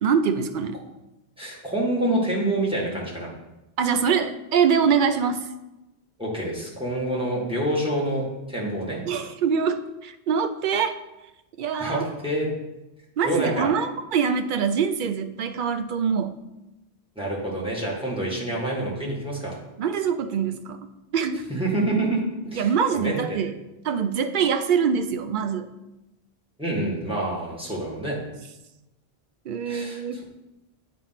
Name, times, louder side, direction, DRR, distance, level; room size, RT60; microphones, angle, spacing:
voice 1, 0.0-0.8 3.8-5.5 9.1-10.9 11.6-12.0 13.2-16.4 19.8-20.8 21.1-21.4 22.5-23.5 23.8-25.7 29.5-30.2, right 6 dB, 60° right, 9 dB, 0.6 m, -24 dB
voice 2, 1.4-3.3 6.2-9.0 11.8-12.5 13.2-13.7 17.1-19.6 21.5-23.4 26.6-28.2 29.6-30.0, right 1 dB, 5° right, -4 dB, 1.6 m, -27 dB
8.4 x 3.0 x 5.7 m, 0.96 s
omnidirectional pair, 1.1 m